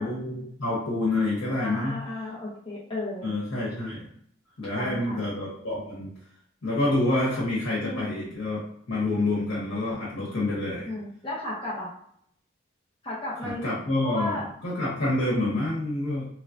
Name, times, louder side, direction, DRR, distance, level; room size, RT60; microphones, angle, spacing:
voice 1, 0.0-2.0 3.2-4.1 4.6-6.1 6.6-8.6 8.9-10.9 13.4-16.3, left 2 dB, 80° left, -7 dB, 0.9 m, -27 dB
voice 2, 1.6-3.3 4.8-5.2 7.8-8.2 10.9-11.9 13.0-13.6 14.0-14.4, left 1 dB, 25° left, -7 dB, 0.7 m, -34 dB
3.1 x 2.3 x 2.5 m, 0.68 s
head